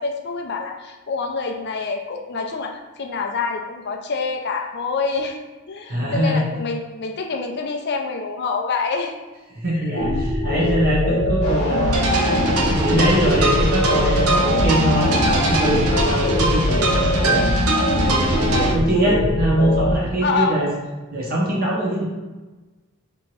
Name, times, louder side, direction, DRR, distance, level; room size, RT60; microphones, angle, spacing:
voice 1, 0.0-5.4 5.7-9.1 9.8-9.9 10.6-10.8 14.3-14.5 15.9-16.2 18.6-18.8 20.2-20.6, left 4 dB, 50° left, 3 dB, 0.5 m, -26 dB
voice 2, 5.9-6.4 9.6-17.4 17.9-20.7 21.1-22.0, right 1 dB, 45° right, -4 dB, 1.2 m, -22 dB
sound 1, 10.0-19.9, left 1 dB, 75° left, 0.8 m, -22 dB
Fixed-wing aircraft airplane, 11.4-17.4, equal, 30° left, 1.0 m, -31 dB
sound 2, 11.9-18.7, right 2 dB, 80° right, 0.7 m, -23 dB
3.5 x 3.0 x 4.6 m, 1.2 s
head